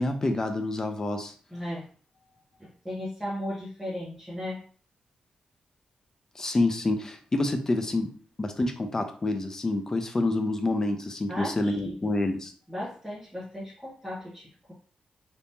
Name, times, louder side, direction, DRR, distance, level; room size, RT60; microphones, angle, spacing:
voice 1, 0.0-1.3 6.4-8.1 8.4-12.5, left 2 dB, 25° left, 6 dB, 0.5 m, -27 dB
voice 2, 1.5-1.9 2.6-4.6 11.3-12.1 12.7-14.7, left 1 dB, ahead, -9 dB, 1.1 m, -36 dB
3.5 x 2.8 x 2.7 m, 0.43 s
wide cardioid pair, 155°, 2 cm